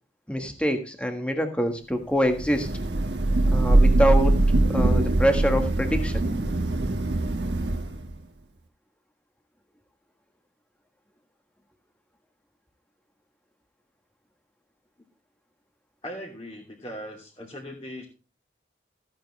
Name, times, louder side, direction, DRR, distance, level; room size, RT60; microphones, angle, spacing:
voice 1, 0.3-2.7 3.5-4.3 4.7-6.3, equal, 5° left, 5 dB, 1.5 m, -25 dB
Thunder / Rain, 2.4-8.1, right 2 dB, 75° right, 1.3 m, -22 dB
voice 2, 16.0-18.0, equal, 30° left, -5 dB, 2.8 m, -39 dB
14.5 x 8.9 x 3.2 m, 0.33 s
head